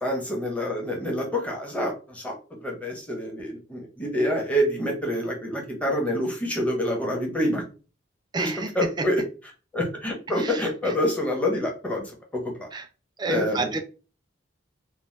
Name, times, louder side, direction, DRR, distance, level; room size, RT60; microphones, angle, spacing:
voice 1, 0.0-2.3 2.6-7.6 8.4-12.7 13.3-13.8, equal, 5° left, 0.8 m, -27 dB
voice 2, 8.3-8.7 10.4-10.5 12.7-12.8 13.2-13.8, right 3 dB, 20° right, 0.3 m, -28 dB
2.8 x 2.0 x 3.1 m
head